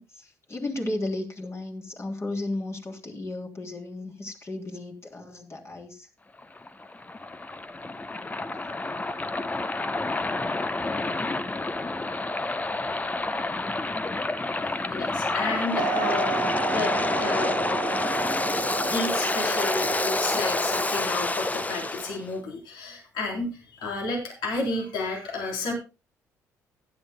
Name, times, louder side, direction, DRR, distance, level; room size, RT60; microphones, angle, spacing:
voice 1, 0.0-6.1, left 2 dB, 35° left, 1 dB, 3.3 m, -34 dB
Waves surf, 6.4-22.2, left 2 dB, 20° left, 0.9 m, -28 dB
voice 2, 14.7-16.4 16.7-17.6 18.8-25.7, left 3 dB, 70° left, 1 dB, 3.5 m, -31 dB
Wind instrument woodwind instrument, 15.8-21.4, right 15 dB, 70° right, 0.7 m, -34 dB
16.0 x 11.0 x 2.2 m, 0.27 s
hypercardioid pair, 50°, 8 cm